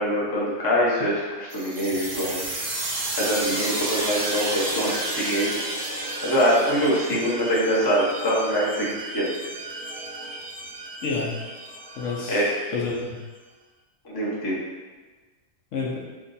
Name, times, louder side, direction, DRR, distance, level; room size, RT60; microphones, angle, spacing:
voice 1, 0.0-2.4 3.2-5.5 6.2-9.3 12.3-12.5 14.0-14.6, equal, 25° left, -6 dB, 0.6 m, -24 dB
sound 1, 1.5-12.9, right 1 dB, 55° right, 0.9 m, -32 dB
voice 2, 11.0-11.3 12.0-13.2 15.7-16.0, left 4 dB, 70° left, -3 dB, 0.9 m, -29 dB
3.5 x 2.2 x 3.9 m, 1.3 s
omnidirectional pair, 1.4 m